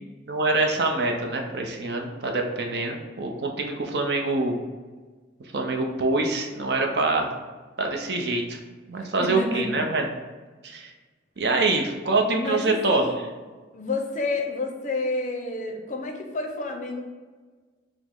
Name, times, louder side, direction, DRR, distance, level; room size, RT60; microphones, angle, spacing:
voice 1, 0.3-4.5 5.5-7.3 7.8-8.6 8.9-10.1 10.6-10.9 11.4-13.1, right 3 dB, 60° right, 3 dB, 0.5 m, -25 dB
voice 2, 9.2-9.7 12.3-13.2 13.7-17.0, left 3 dB, 40° left, 3 dB, 0.5 m, -29 dB
4.9 x 2.0 x 3.6 m, 1.4 s
head